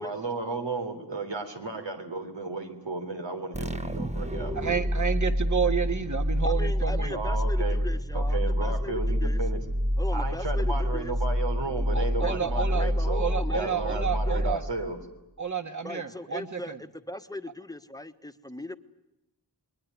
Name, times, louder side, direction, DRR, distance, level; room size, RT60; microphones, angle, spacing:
voice 1, 0.0-4.6 7.1-7.8 8.1-9.6 10.1-15.0, right 3 dB, 85° right, 5 dB, 3.6 m, -34 dB
sound 1, 3.5-15.0, equal, 15° right, 1.0 m, -27 dB
voice 2, 4.5-7.2 11.9-12.9 13.1-14.6 15.4-16.8, right 6 dB, 45° right, 8 dB, 1.8 m, -30 dB
voice 3, 6.4-9.4 10.0-11.1 12.2-14.6 15.8-18.8, left 1 dB, 10° left, 9 dB, 1.3 m, -39 dB
28.5 x 21.5 x 9.5 m, 0.90 s
wide cardioid pair, 80°, 42 cm